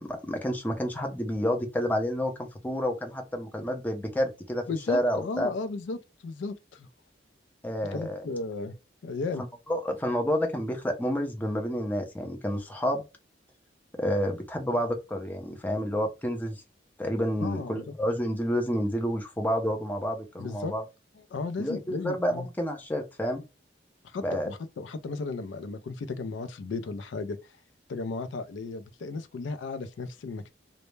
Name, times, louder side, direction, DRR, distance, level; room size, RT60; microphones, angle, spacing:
voice 1, 0.0-5.5 7.6-8.3 9.7-13.0 14.0-16.6 17.0-20.8 21.6-23.4 24.2-24.5, equal, 10° left, 0.4 m, -29 dB
voice 2, 4.7-6.9 7.9-8.8 9.0-9.4 17.4-17.9 20.4-20.7 21.3-22.5 24.0-27.4 27.9-30.5, left 3 dB, 85° left, 0.4 m, -35 dB
2.1 x 2.0 x 3.0 m
head